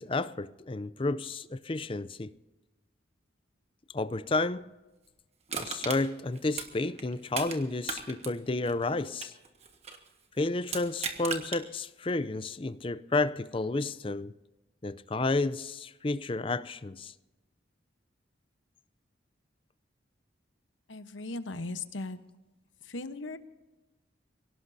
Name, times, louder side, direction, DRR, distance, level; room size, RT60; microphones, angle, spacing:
voice 1, 0.0-2.3 3.9-4.7 5.6-9.3 10.4-14.3 14.8-17.1, left 2 dB, 30° left, 0.5 m, -31 dB
Crushing, 5.5-7.6 7.8-10.1 10.6-11.6 12.1-12.2, right 5 dB, 35° right, 1.5 m, -37 dB
voice 2, 20.9-22.2 22.8-23.4, left 2 dB, 85° left, 1.0 m, -37 dB
23.5 x 17.5 x 2.7 m
head